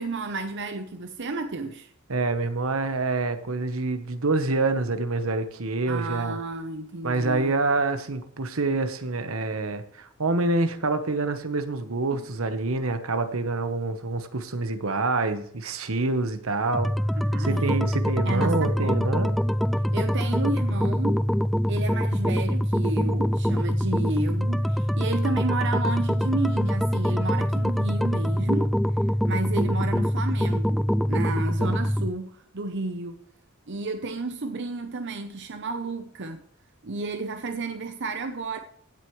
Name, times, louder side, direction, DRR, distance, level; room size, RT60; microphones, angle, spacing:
voice 1, 0.0-1.9 5.9-7.5 17.2-17.8 18.2-19.0 19.9-21.2 21.7-28.8 29.2-33.2 33.7-36.4 36.8-38.6, right 3 dB, 60° right, 0.8 m, -32 dB
voice 2, 2.1-6.4 7.0-16.9 17.4-19.4, right 3 dB, 80° right, 1.2 m, -26 dB
sound 1, 16.7-32.1, equal, ahead, 0.4 m, -24 dB
16.0 x 8.0 x 3.2 m
head